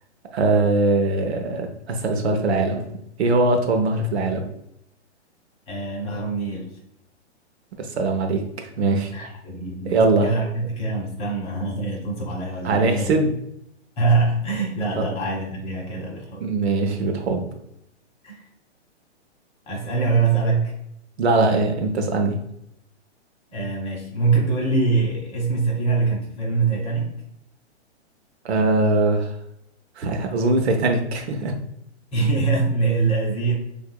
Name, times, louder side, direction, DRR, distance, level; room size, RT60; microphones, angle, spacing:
voice 1, 0.3-2.8 3.2-4.5 7.8-9.1 9.8-10.3 12.6-13.4 14.9-15.1 16.4-17.5 21.2-22.4 28.4-29.3 30.0-31.6, right 3 dB, 65° right, 4 dB, 0.9 m, -21 dB
voice 2, 5.7-6.8 9.1-10.0 10.2-13.1 14.0-16.4 18.2-18.4 19.7-20.7 23.5-27.1 32.1-33.6, right 4 dB, 20° left, -2 dB, 1.2 m, -23 dB
6.7 x 2.7 x 2.2 m, 0.77 s
hypercardioid pair, 135°, 35 cm